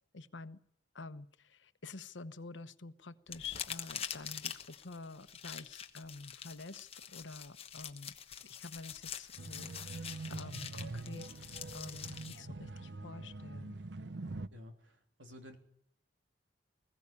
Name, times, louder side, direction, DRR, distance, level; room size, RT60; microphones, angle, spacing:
voice 1, 0.1-0.6 0.9-8.1 8.4-13.8, left 3 dB, 80° left, 12 dB, 1.1 m, -48 dB
sound 1, 3.3-12.4, left 8 dB, 30° left, 1.1 m, -45 dB
sound 2, 9.4-14.5, right 3 dB, 65° right, 0.7 m, -44 dB
voice 2, 14.5-15.6, left 1 dB, 80° right, 5 dB, 3.3 m, -53 dB
20.5 x 15.5 x 8.6 m, 0.75 s
head